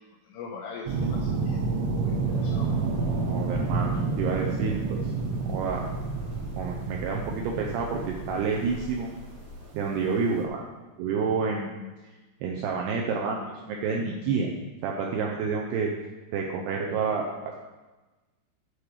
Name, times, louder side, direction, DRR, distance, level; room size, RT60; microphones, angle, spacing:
voice 1, 0.2-2.7, left 4 dB, 80° left, -1 dB, 2.7 m, -42 dB
sound 1, 0.9-9.0 10.4-10.5, right 4 dB, 70° right, 3.1 m, -29 dB
sound 2, 2.2-9.7, left 2 dB, 35° left, 4.4 m, -46 dB
voice 2, 3.3-5.1 5.5-5.9 6.6-9.1 9.7-10.6 11.0-11.8 12.4-14.5 14.8-15.9 16.3-17.6, right 5 dB, 85° right, 0 dB, 2.3 m, -29 dB
10.0 x 5.1 x 6.5 m, 1.2 s
omnidirectional pair, 5.8 m